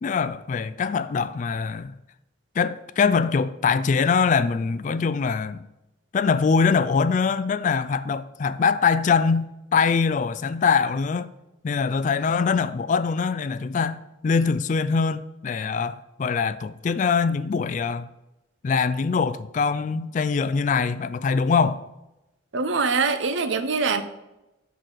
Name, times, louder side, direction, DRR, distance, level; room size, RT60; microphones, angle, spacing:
voice 1, 0.0-1.9 2.6-5.7 6.1-11.3 11.6-18.1 18.6-21.8, left 5 dB, 40° left, 0.3 m, -23 dB
voice 2, 22.5-24.0, right 4 dB, 70° right, 0.7 m, -23 dB
6.4 x 4.0 x 6.2 m
head